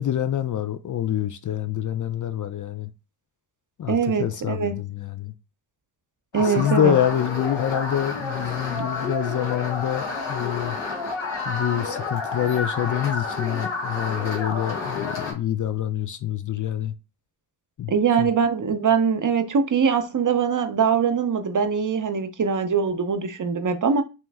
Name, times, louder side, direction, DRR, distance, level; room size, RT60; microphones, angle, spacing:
voice 1, 0.0-2.9 3.8-5.3 6.4-10.8 11.4-16.9 17.8-17.9 18.2-18.3, left 10 dB, 45° left, 0.4 m, -26 dB
voice 2, 3.9-4.8 6.3-6.9 17.9-24.0, right 6 dB, 40° right, 0.7 m, -22 dB
sound 1, 6.3-15.3, left 3 dB, 75° left, 1.3 m, -30 dB
3.0 x 2.9 x 3.4 m
supercardioid pair, 50°, 46 cm